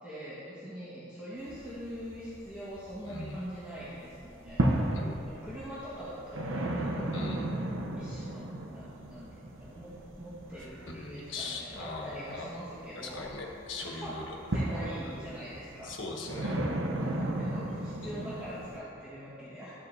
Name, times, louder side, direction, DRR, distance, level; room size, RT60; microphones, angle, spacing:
voice 1, 0.0-4.6 5.2-7.3 8.0-9.3 9.6-13.3 13.8-14.2 14.5-16.0 17.0-19.7, equal, 10° right, -12 dB, 1.5 m, -43 dB
sound 1, 1.4-3.6 3.9-18.8, right 1 dB, 85° right, 0.8 m, -35 dB
voice 2, 3.0-3.4 4.9-5.3 7.1-7.5 10.9-12.5 12.9-14.4 15.1-15.4 15.8-16.6 17.0-17.1 18.0-18.3, left 2 dB, 75° left, 0 dB, 1.3 m, -40 dB
12.5 x 7.9 x 2.7 m, 2.7 s
head